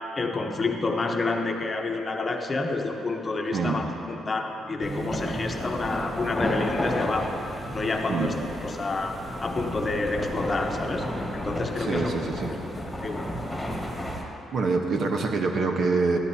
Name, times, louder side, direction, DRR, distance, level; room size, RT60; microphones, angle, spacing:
voice 1, 0.2-7.4 7.7-8.3 8.6-9.2 9.4-11.1 11.3-12.1 12.6-12.7 13.0-13.2, left 3 dB, 30° left, 2 dB, 0.9 m, -28 dB
voice 2, 3.5-3.8 8.1-8.3 11.8-12.5 14.5-16.2, right 4 dB, 60° right, 3 dB, 1.0 m, -25 dB
sound 1, 4.8-14.2, equal, 5° left, 1.6 m, -32 dB
13.0 x 12.0 x 2.8 m, 2.9 s
cardioid pair, 90°, 0 cm